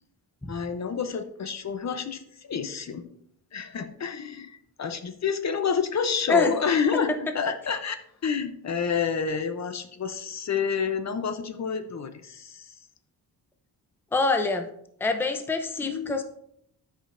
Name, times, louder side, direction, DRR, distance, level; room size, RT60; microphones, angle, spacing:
voice 1, 0.5-3.0 3.5-8.0 8.2-12.7 15.8-16.2, left 6 dB, 45° left, 9 dB, 0.6 m, -29 dB
voice 2, 14.1-14.7 15.0-16.2, left 3 dB, 5° left, 6 dB, 0.5 m, -25 dB
12.5 x 5.2 x 2.5 m, 0.71 s
wide cardioid pair, 140°, 38 cm